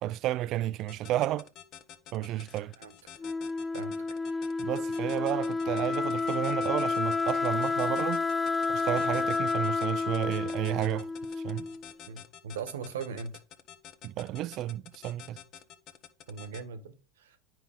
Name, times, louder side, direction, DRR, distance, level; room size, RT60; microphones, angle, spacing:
voice 1, 0.0-1.5 2.1-2.7 4.6-8.2 8.7-11.1 11.4-11.7 14.0-15.4, right 14 dB, 50° right, 0.4 m, -32 dB
sound 1, 0.8-16.6, left 10 dB, 50° left, 1.2 m, -49 dB
Wind instrument woodwind instrument, 3.2-11.9, left 4 dB, 15° left, 0.4 m, -30 dB
voice 2, 12.0-13.4 16.3-17.4, right 6 dB, 90° right, 1.4 m, -39 dB
9.2 x 5.6 x 3.6 m
hypercardioid pair, 100°, 0 cm